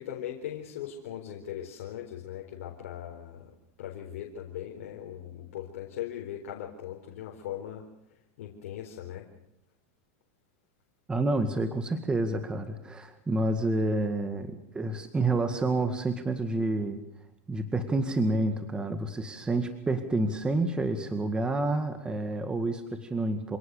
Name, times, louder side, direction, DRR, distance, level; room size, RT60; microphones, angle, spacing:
voice 1, 0.0-3.5 3.8-7.9 8.4-9.3, left 10 dB, 80° left, 0 dB, 4.2 m, -39 dB
voice 2, 11.1-17.0 17.5-23.6, right 2 dB, 10° right, 8 dB, 2.0 m, -29 dB
27.5 x 18.0 x 6.7 m, 0.80 s
supercardioid pair, 135°, 7 cm